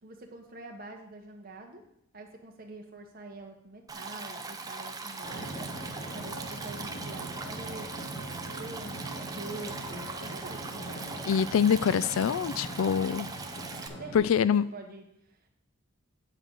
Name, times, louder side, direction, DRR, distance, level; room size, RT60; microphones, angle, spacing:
voice 1, 0.0-1.8 2.1-11.2 14.0-15.5, right 2 dB, 45° right, 2 dB, 1.2 m, -46 dB
Stream, 3.9-13.9, right 4 dB, 15° right, 0.5 m, -40 dB
Drum, 5.2-14.2, right 1 dB, 30° left, 2.2 m, -41 dB
voice 2, 11.3-13.3 14.1-14.6, left 7 dB, 75° left, 17 dB, 0.3 m, -25 dB
8.9 x 3.9 x 6.4 m, 0.75 s
head